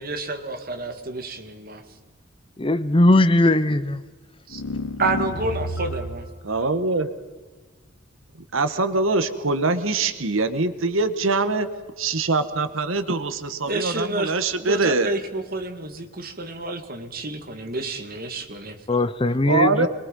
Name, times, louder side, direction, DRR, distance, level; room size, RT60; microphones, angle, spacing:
voice 1, 0.0-1.8 4.5-4.6 5.0-6.2 13.7-18.8, right 2 dB, 45° right, 5 dB, 2.3 m, -29 dB
voice 2, 2.6-4.0 18.9-19.9, left 1 dB, 25° left, 14 dB, 0.7 m, -19 dB
sound 1, 4.5-6.3, left 1 dB, 60° left, 1.3 m, -30 dB
voice 3, 6.4-7.1 8.5-11.7 12.0-15.1 19.4-19.9, right 3 dB, 75° right, 10 dB, 1.4 m, -23 dB
26.5 x 22.0 x 5.5 m, 1.3 s
head